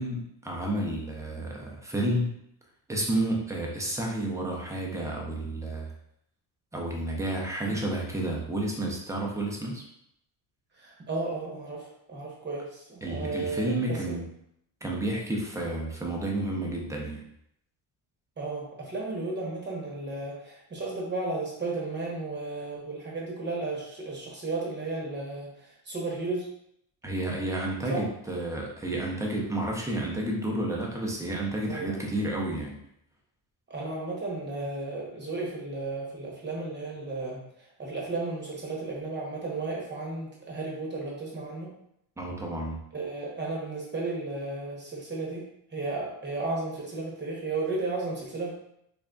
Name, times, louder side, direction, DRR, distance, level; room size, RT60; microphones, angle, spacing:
voice 1, 0.0-2.3 2.9-5.9 6.7-9.8 13.0-14.3 14.8-17.2 27.0-32.8 42.2-42.8, right 1 dB, 5° right, -2 dB, 0.4 m, -31 dB
voice 2, 10.8-13.7 18.4-25.5 25.9-26.5 27.9-28.0 31.6-31.9 33.7-37.4 37.8-41.7 42.9-45.4 45.7-48.6, right 3 dB, 25° right, -3 dB, 0.8 m, -34 dB
3.7 x 3.3 x 2.2 m, 0.75 s
cardioid pair, 160°, 46 cm